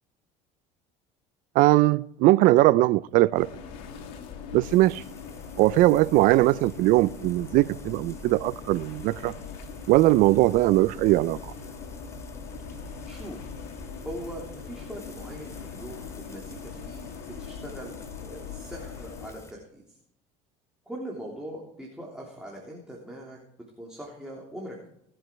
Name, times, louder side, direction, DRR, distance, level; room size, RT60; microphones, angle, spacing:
voice 1, 1.6-3.5 4.5-5.0 5.6-9.3 9.9-11.4, right 17 dB, 65° right, 0.4 m, -20 dB
sound 1, 3.3-19.3, left 6 dB, 75° left, 2.3 m, -41 dB
Frying (food), 4.6-19.5, equal, 20° left, 2.5 m, -49 dB
voice 2, 13.0-13.5 14.0-17.1 17.4-18.0 18.2-19.8 20.8-23.4 23.8-24.9, right 1 dB, 5° right, 3.3 m, -41 dB
19.5 x 7.8 x 4.5 m
supercardioid pair, 110°, 15 cm